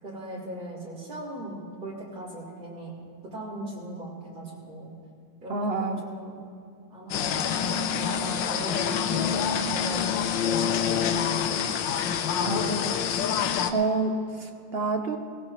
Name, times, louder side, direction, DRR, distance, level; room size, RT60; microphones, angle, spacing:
voice 1, 0.0-2.9 3.3-4.9 5.4-6.3 6.9-10.4 10.8-11.7 12.4-12.7, right 1 dB, 75° right, -7 dB, 4.6 m, -39 dB
voice 2, 5.5-6.0 12.4-13.2 13.7-15.2, right 3 dB, 50° right, 6 dB, 0.7 m, -28 dB
sound 1, 7.1-13.7, left 7 dB, 85° left, 1.5 m, -26 dB
19.5 x 17.0 x 3.0 m, 2.6 s
omnidirectional pair, 2.0 m